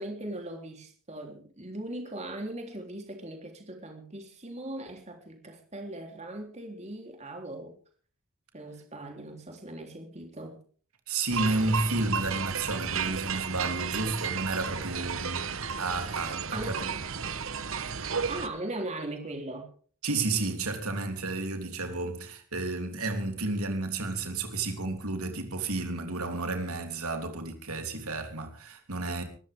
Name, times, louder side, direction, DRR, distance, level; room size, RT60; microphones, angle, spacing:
voice 1, 0.0-7.7 8.5-10.6 16.5-16.8 18.3-19.7, right 1 dB, 30° right, 3.6 m, -39 dB
voice 2, 11.1-16.8 20.0-29.2, right 3 dB, 80° right, 3.4 m, -31 dB
sound 1, 11.3-18.5, right 6 dB, 65° right, 1.2 m, -33 dB
23.0 x 13.5 x 3.7 m
head